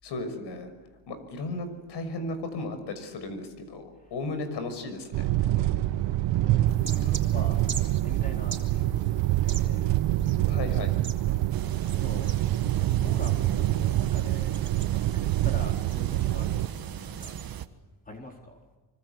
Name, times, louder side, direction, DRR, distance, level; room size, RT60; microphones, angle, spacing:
voice 1, 0.0-0.7 1.1-5.3 10.5-10.9, left 2 dB, 65° left, 9 dB, 6.3 m, -35 dB
sound 1, 5.1-16.7, right 15 dB, 80° right, 1.2 m, -26 dB
voice 2, 6.4-7.6 8.0-9.8 11.7-12.3 12.8-14.6 14.9-17.4 18.0-18.6, left 1 dB, 20° left, 1 dB, 4.1 m, -44 dB
sound 2, 6.7-17.7, right 5 dB, 25° right, 4.4 m, -45 dB
sound 3, 11.5-17.7, right 9 dB, 50° right, 1.7 m, -39 dB
25.5 x 25.0 x 8.3 m, 1.2 s
cardioid pair, 100°, 44 cm